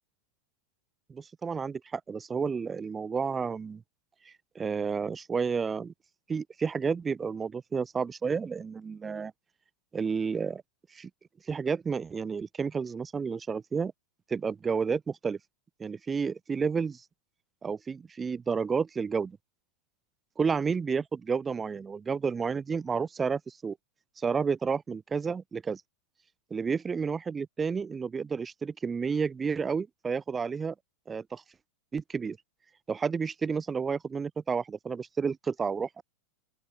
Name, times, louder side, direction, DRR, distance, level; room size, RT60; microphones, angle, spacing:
voice 1, 1.1-3.8 4.3-5.9 6.3-9.3 9.9-10.6 10.9-11.1 11.5-13.9 14.3-15.4 15.8-17.0 17.6-19.4 20.4-23.8 24.2-25.8 26.5-30.7 31.1-31.4 31.9-32.4 32.9-36.0, right 5 dB, 15° right, 3.9 m, -31 dB
open air
figure-of-eight pair, 90°, 0 cm